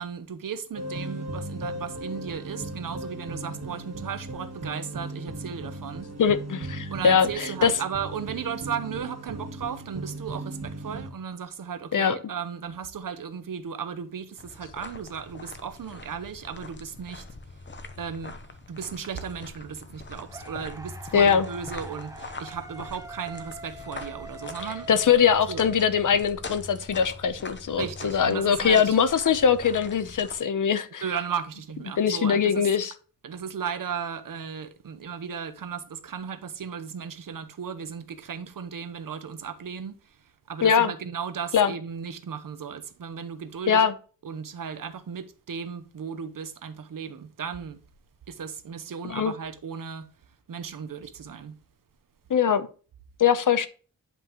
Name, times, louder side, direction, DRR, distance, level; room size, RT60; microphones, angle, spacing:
voice 1, 0.0-6.1 6.9-17.3 18.0-18.4 18.7-24.9 25.5-25.7 27.8-29.0 31.0-32.7 33.2-43.8 44.2-47.8 48.3-50.1 50.5-51.6, right 7 dB, 80° right, 0.9 m, -35 dB
sound 1, 0.7-11.1, right 2 dB, 55° right, 1.5 m, -37 dB
voice 2, 6.2-7.7 11.9-12.2 21.1-21.5 24.9-31.0 32.0-32.9 40.6-40.9 41.5-41.7 43.7-43.9 49.0-49.3 52.3-52.7 53.2-53.7, left 7 dB, 70° left, 0.8 m, -22 dB
sound 2, 14.4-30.4, left 3 dB, 35° left, 0.8 m, -43 dB
sound 3, 20.3-26.4, right 2 dB, 10° right, 0.8 m, -44 dB
10.0 x 5.4 x 3.0 m
wide cardioid pair, 150°, 32 cm